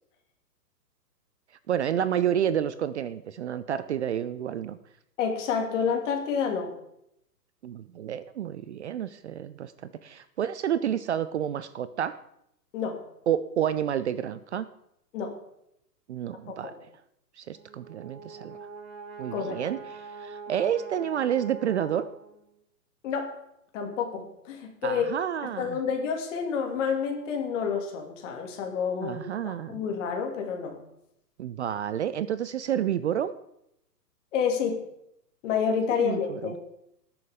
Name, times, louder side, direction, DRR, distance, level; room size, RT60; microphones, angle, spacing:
voice 1, 1.7-4.8 7.6-12.2 13.3-14.7 16.1-16.7 17.4-18.6 19.2-22.1 24.8-25.8 29.0-29.8 31.4-33.3 36.0-36.5, right 9 dB, 45° right, 14 dB, 0.5 m, -29 dB
voice 2, 5.2-6.7 12.7-13.0 15.1-15.4 16.6-16.8 19.3-19.6 23.0-23.3 23.7-25.1 25.6-30.8 34.3-34.8 35.4-36.6, left 6 dB, 45° left, 3 dB, 2.5 m, -29 dB
Brass instrument, 17.5-22.5, right 4 dB, 30° right, 3.7 m, -43 dB
19.0 x 6.9 x 3.6 m, 0.78 s
hypercardioid pair, 125°, 50 cm